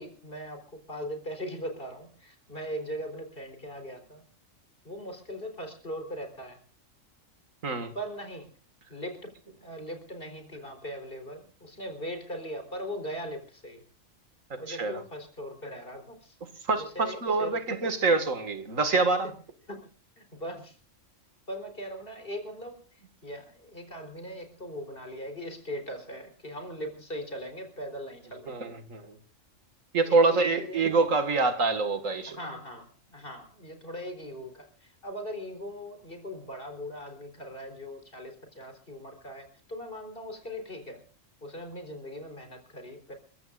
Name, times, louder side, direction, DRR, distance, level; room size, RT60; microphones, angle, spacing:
voice 1, 0.0-4.2 4.8-6.6 7.9-8.5 8.9-13.8 14.6-16.3 16.8-17.6 19.7-19.8 20.2-20.8 21.5-22.8 23.2-28.8 30.1-30.8 32.3-41.0 41.4-43.1, equal, 45° left, 4.3 m, -40 dB
voice 2, 7.6-7.9 14.7-15.0 16.7-19.3 28.5-29.2 29.9-32.4, right 3 dB, 90° right, 2.3 m, -26 dB
29.5 x 15.5 x 2.5 m
omnidirectional pair, 1.3 m